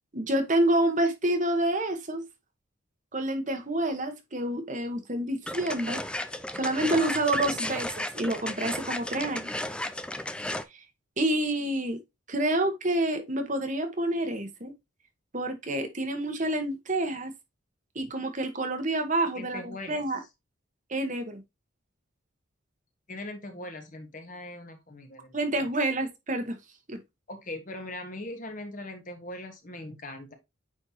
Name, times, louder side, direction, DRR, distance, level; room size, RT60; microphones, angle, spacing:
voice 1, 0.1-2.2 3.1-6.0 6.5-9.5 11.2-12.0 12.3-14.7 15.3-17.3 17.9-20.2 20.9-21.4 25.3-26.6 26.9-27.0, right 1 dB, 40° right, 1.3 m, -28 dB
sound 1, 5.5-10.6, left 1 dB, 5° left, 0.4 m, -34 dB
voice 2, 19.3-20.1 23.1-25.7 27.3-30.3, left 1 dB, 40° left, 1.5 m, -40 dB
9.1 x 4.4 x 2.8 m
head